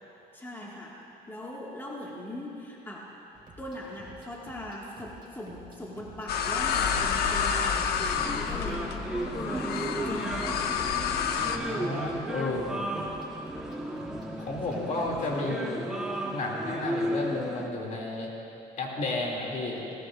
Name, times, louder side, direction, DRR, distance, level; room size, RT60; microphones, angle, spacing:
voice 1, 0.3-3.1 3.6-10.9 14.7-15.3, left 1 dB, 15° left, -4 dB, 1.9 m, -41 dB
sound 1, 3.3-15.4, right 2 dB, 25° right, 3.6 m, -52 dB
sound 2, 6.3-11.6, left 7 dB, 70° left, 0.9 m, -29 dB
sound 3, 8.1-17.7, right 1 dB, 5° right, 1.2 m, -34 dB
voice 2, 11.5-12.8 14.4-15.9 16.3-18.3 18.8-19.8, left 2 dB, 50° left, -2 dB, 2.7 m, -32 dB
20.5 x 18.0 x 2.6 m, 2.9 s
cardioid pair, 110°, 17 cm